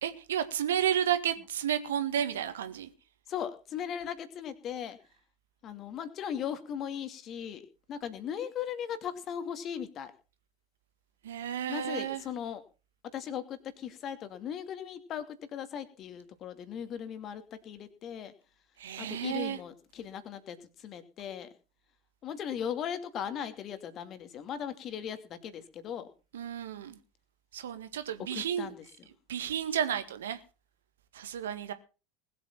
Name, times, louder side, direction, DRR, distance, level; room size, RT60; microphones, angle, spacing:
voice 1, 0.0-2.9 11.2-12.2 18.8-19.6 26.3-27.0 27.5-28.7 29.3-30.4 31.1-31.7, right 9 dB, 70° right, 1.9 m, -32 dB
voice 2, 3.3-5.0 5.6-7.6 7.9-10.1 11.7-12.6 13.1-18.3 19.0-21.5 22.2-26.1 28.3-28.8, left 8 dB, 40° left, 2.4 m, -38 dB
20.0 x 8.3 x 5.9 m
figure-of-eight pair, 80°, 0 cm